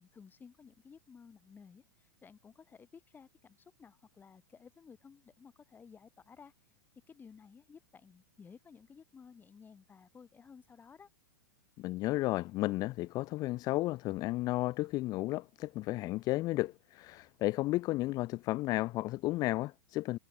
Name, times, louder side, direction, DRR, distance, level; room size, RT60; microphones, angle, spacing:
voice 1, 0.0-6.5 7.1-11.1, left 6 dB, 15° left, 5.1 m, -56 dB
voice 2, 11.8-20.2, left 18 dB, 35° left, 0.9 m, -33 dB
hypercardioid pair, 105°, 11 cm